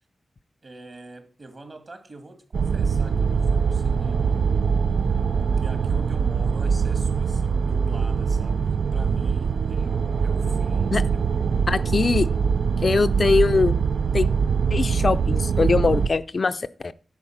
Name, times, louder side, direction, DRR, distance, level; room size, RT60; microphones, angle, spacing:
voice 1, 0.6-4.4 5.3-11.3, right 2 dB, 45° right, 1.8 m, -44 dB
sound 1, 2.5-16.1, right 6 dB, 80° right, 0.4 m, -23 dB
voice 2, 11.7-12.3 12.8-13.8 14.1-14.3 14.7-16.9, left 4 dB, 45° left, 0.4 m, -22 dB
10.5 x 4.4 x 7.2 m
wide cardioid pair, 105°, 0 cm